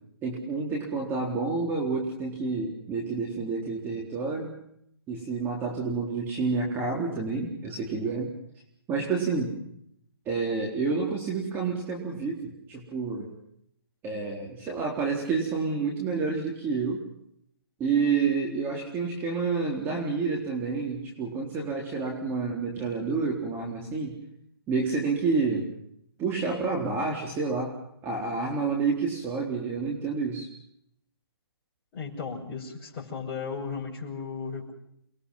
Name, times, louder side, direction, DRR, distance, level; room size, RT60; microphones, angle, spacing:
voice 1, 0.2-4.5 5.1-8.3 8.9-9.5 10.3-13.3 14.0-17.1 17.8-24.1 24.7-25.7 26.2-27.8 28.0-30.5, right 4 dB, 15° right, -1 dB, 4.1 m, -29 dB
voice 2, 31.9-34.7, left 5 dB, 25° left, -4 dB, 6.9 m, -35 dB
29.5 x 22.0 x 5.7 m, 0.71 s
hypercardioid pair, 150°, 13 cm